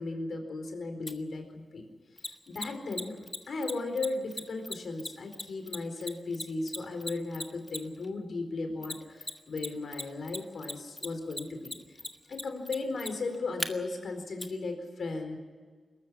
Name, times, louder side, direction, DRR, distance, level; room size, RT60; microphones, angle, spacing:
voice 1, 0.0-1.9 2.2-11.8 12.3-15.4, left 3 dB, 70° left, 5 dB, 4.3 m, -36 dB
Mechanisms, 1.1-1.2 2.2-8.0 8.8-9.7 9.9-13.7 14.4-14.5, left 2 dB, 20° left, 1.5 m, -37 dB
22.0 x 13.5 x 9.8 m, 1.5 s
cardioid pair, 85°, 0 cm